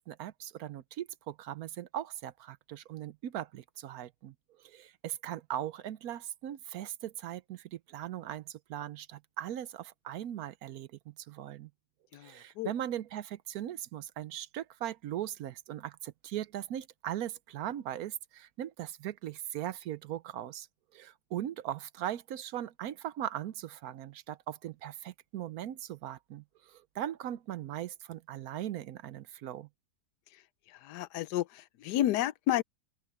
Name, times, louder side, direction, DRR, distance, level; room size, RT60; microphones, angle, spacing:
voice 1, 0.0-4.3 4.6-11.7 12.2-20.7 20.9-29.7, right 11 dB, 70° right, 1.1 m, -39 dB
voice 2, 30.8-32.6, left 13 dB, 85° left, 1.2 m, -31 dB
open air
omnidirectional pair, 1.7 m